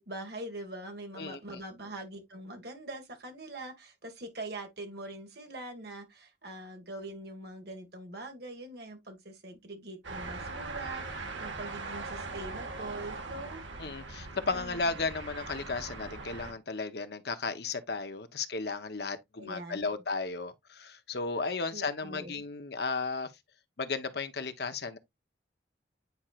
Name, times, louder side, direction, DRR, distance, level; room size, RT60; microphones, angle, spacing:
voice 1, 0.0-13.6 14.5-15.0 19.4-19.9 21.7-22.4, right 2 dB, 55° right, 1.9 m, -43 dB
voice 2, 1.2-1.6 13.8-23.3 23.8-25.0, left 4 dB, 60° left, 0.9 m, -34 dB
sound 1, 10.0-16.5, right 3 dB, 85° right, 1.6 m, -41 dB
9.4 x 4.4 x 2.4 m
head